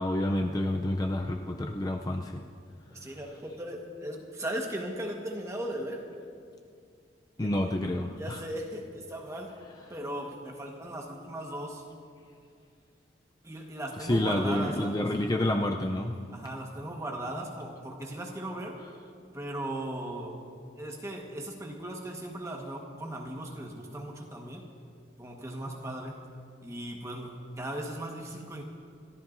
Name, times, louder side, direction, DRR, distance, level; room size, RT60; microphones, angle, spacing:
voice 1, 0.0-2.4 7.4-8.4 14.0-16.2, left 1 dB, 20° left, 3 dB, 0.4 m, -29 dB
voice 2, 2.9-6.1 7.4-7.7 8.2-9.5 9.9-11.8 13.4-15.1 16.3-18.8 19.3-20.4 20.8-24.6 25.2-26.1 26.6-28.6, right 1 dB, 15° right, 0 dB, 1.3 m, -37 dB
28.5 x 14.0 x 2.6 m, 2.3 s
head